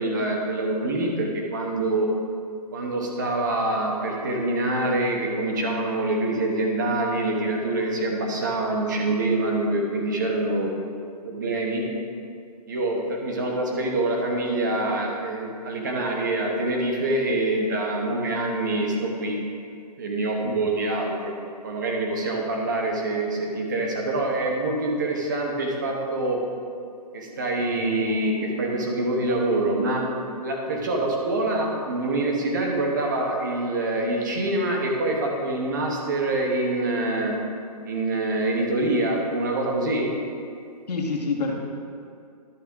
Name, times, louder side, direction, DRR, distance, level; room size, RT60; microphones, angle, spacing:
voice 1, 0.0-2.1 2.7-10.7 11.2-11.8 12.7-19.4 20.0-21.4 21.6-26.4 27.1-30.0 30.4-37.4 37.8-40.1, right 2 dB, 30° right, 0 dB, 1.1 m, -25 dB
voice 2, 27.6-27.9 30.7-30.9 40.9-41.6, left 4 dB, 75° left, -1 dB, 1.7 m, -29 dB
12.0 x 5.5 x 3.6 m, 2.3 s
hypercardioid pair, 175°, 21 cm